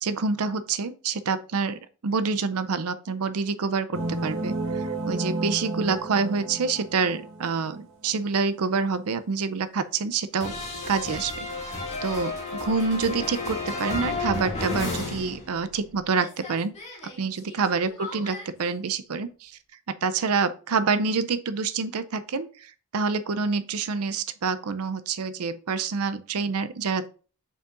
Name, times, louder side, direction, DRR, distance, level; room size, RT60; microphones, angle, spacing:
voice 1, 0.0-10.5 10.9-16.7 17.2-19.6 19.9-27.1, right 4 dB, 80° right, 0.5 m, -27 dB
sound 1, 3.9-7.9, right 2 dB, 60° right, 1.1 m, -32 dB
sound 2, 10.4-15.9 16.1-18.5, left 2 dB, 30° left, 2.1 m, -33 dB
7.0 x 5.6 x 2.5 m
head